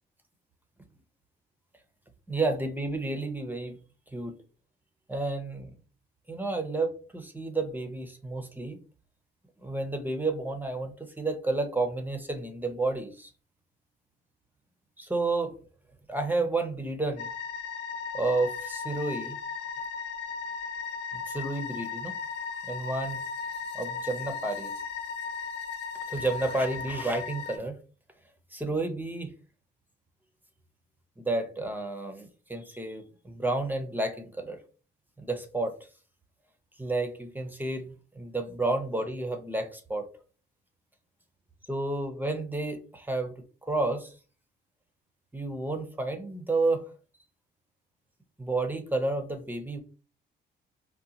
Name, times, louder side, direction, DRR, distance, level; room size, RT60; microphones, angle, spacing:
voice 1, 2.3-3.8 4.1-4.4 5.1-5.7 6.3-8.8 9.6-13.3 15.0-15.5 16.1-17.3 18.1-19.4 21.1-22.2 22.7-23.2 23.7-24.7 26.1-27.7 28.5-29.3 31.2-34.6 35.2-35.8 36.8-40.1 41.7-43.3 43.7-44.1 45.3-46.8 48.4-49.8, right 2 dB, 10° right, 6 dB, 0.6 m, -31 dB
sound 1, 17.2-27.6, left 5 dB, 65° left, 0.8 m, -36 dB
3.7 x 2.2 x 2.8 m, 0.37 s
cardioid pair, 90°, 20 cm